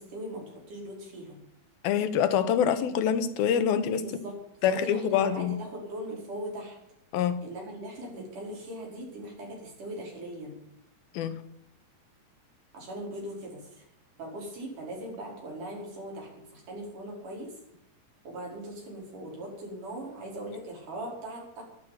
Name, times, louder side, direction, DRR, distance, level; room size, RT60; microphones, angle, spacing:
voice 1, 0.0-1.4 4.0-4.4 4.6-6.8 7.4-10.6 12.7-13.8 14.2-17.5 18.2-21.6, right 1 dB, 60° right, -1 dB, 6.7 m, -40 dB
voice 2, 1.8-4.0 4.6-5.6 7.1-7.4 11.1-11.4, left 8 dB, 90° left, 12 dB, 3.0 m, -25 dB
13.0 x 11.5 x 9.4 m, 0.77 s
omnidirectional pair, 4.2 m